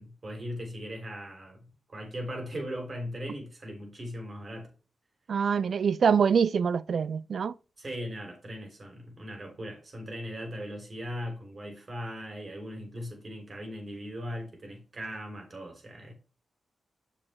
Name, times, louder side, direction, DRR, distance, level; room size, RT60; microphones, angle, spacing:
voice 1, 0.0-4.7 7.8-16.1, equal, 45° right, 3.5 m, -39 dB
voice 2, 5.3-7.5, right 6 dB, 70° right, 0.4 m, -25 dB
7.5 x 6.7 x 3.4 m
cardioid pair, 60°, 0 cm